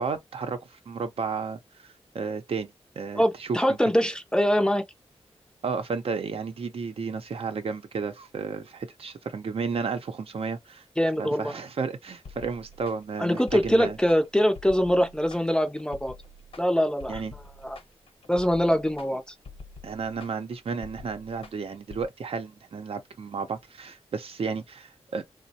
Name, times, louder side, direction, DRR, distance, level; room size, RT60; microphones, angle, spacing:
voice 1, 0.0-3.9 5.6-10.8 11.2-14.0 17.1-17.3 19.8-25.2, right 5 dB, 60° right, 0.6 m, -33 dB
voice 2, 3.1-4.8 11.0-11.5 13.2-16.1 16.6-17.2 17.6-17.8 18.3-19.3, equal, 5° left, 0.5 m, -23 dB
sound 1, 12.2-22.1, left 3 dB, 60° left, 0.9 m, -47 dB
3.0 x 2.1 x 2.7 m
wide cardioid pair, 105°, 11 cm